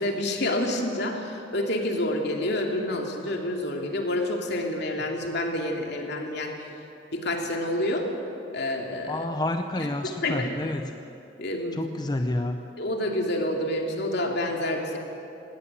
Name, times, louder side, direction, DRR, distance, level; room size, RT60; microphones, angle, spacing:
voice 1, 0.0-6.5 7.1-8.1 8.5-9.3 9.8-9.9 10.2-10.5 11.4-11.8 12.8-15.0, left 1 dB, 60° left, 2 dB, 2.7 m, -28 dB
voice 2, 9.1-10.9 11.7-12.7, left 1 dB, 20° left, 6 dB, 0.7 m, -29 dB
18.5 x 18.0 x 9.0 m, 2.9 s
head